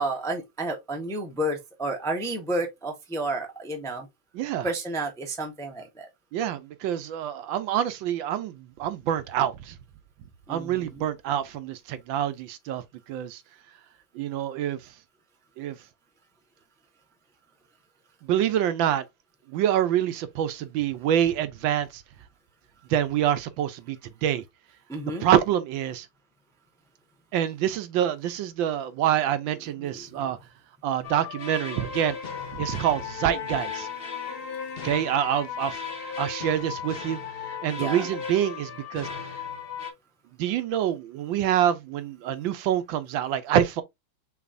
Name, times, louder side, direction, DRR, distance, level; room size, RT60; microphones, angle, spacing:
voice 1, 0.0-4.1 4.6-6.0 10.5-11.0 24.9-25.3 37.7-38.0, right 1 dB, 5° left, 0.5 m, -31 dB
voice 2, 4.3-4.7 6.3-9.8 10.5-12.8 13.1-13.4 14.1-14.8 15.6-15.8 18.3-19.0 19.5-22.0 22.9-24.0 24.2-24.4 25.2-26.1 27.3-30.4 30.8-32.2 32.5-33.9 34.8-35.8 36.2-37.2 37.5-39.1 40.4-43.8, right 10 dB, 75° right, 1.3 m, -26 dB
sound 1, 31.0-39.9, left 6 dB, 45° left, 0.8 m, -35 dB
6.0 x 3.3 x 2.5 m
omnidirectional pair, 2.2 m